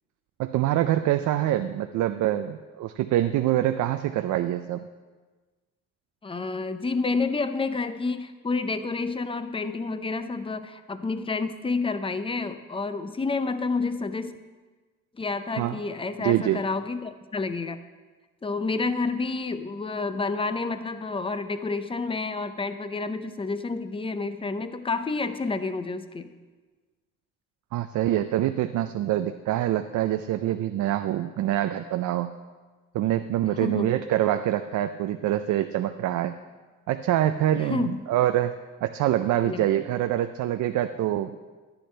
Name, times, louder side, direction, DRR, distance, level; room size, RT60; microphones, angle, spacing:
voice 1, 0.4-4.9 15.6-15.8 16.2-16.6 27.7-32.3 32.9-36.4 36.9-38.5 38.8-41.4, right 12 dB, 75° right, 8 dB, 0.5 m, -25 dB
voice 2, 6.2-14.4 15.1-17.8 18.4-26.3 33.6-33.9 37.6-38.0 39.5-39.7, left 3 dB, 20° left, 10 dB, 0.6 m, -29 dB
11.5 x 10.5 x 3.3 m, 1.3 s
cardioid pair, 90°, 30 cm